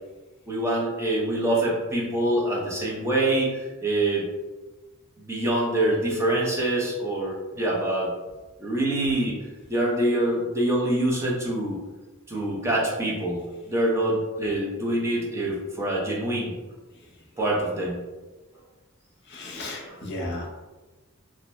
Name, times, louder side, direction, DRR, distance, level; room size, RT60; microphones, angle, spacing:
voice 1, 0.5-4.2 5.2-8.1 8.6-9.4 9.7-11.8 12.3-16.5 17.4-18.0 19.7-20.0, right 1 dB, 15° right, -5 dB, 0.6 m, -25 dB
voice 2, 19.3-20.5, left 1 dB, 55° left, -2 dB, 0.7 m, -34 dB
2.6 x 2.1 x 3.1 m, 1.2 s
head